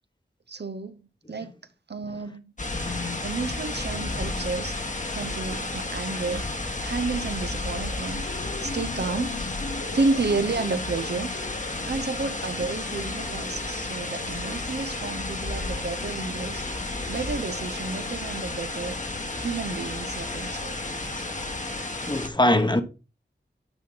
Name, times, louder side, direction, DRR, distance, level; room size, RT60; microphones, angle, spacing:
voice 1, 0.5-1.5 1.9-2.5 3.2-4.8 5.1-8.2 8.6-9.4 9.9-11.3 11.8-16.6 17.1-19.0 19.4-20.8, right 3 dB, 65° right, 0.7 m, -31 dB
sound 1, 2.6-22.3, left 2 dB, 40° left, 1.2 m, -32 dB
voice 2, 2.8-3.3 20.3-20.5 21.2-21.3 22.1-22.8, left 1 dB, 25° left, 1.0 m, -24 dB
sound 2, 7.5-18.0, left 4 dB, 65° left, 0.7 m, -42 dB
9.1 x 5.2 x 4.0 m
wide cardioid pair, 50°, 19 cm